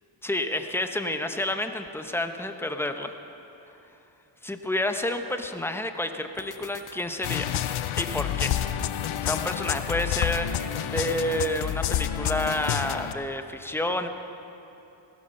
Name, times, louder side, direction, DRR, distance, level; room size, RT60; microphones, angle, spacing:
voice 1, 0.2-3.1 4.4-7.7 8.0-8.5 9.2-14.1, left 1 dB, 5° left, 7 dB, 1.0 m, -29 dB
sound 1, 6.3-12.8, left 6 dB, 40° left, 0.8 m, -48 dB
sound 2, 7.2-13.1, left 11 dB, 85° left, 0.6 m, -29 dB
16.5 x 12.5 x 5.5 m, 2.9 s
cardioid pair, 55°, 48 cm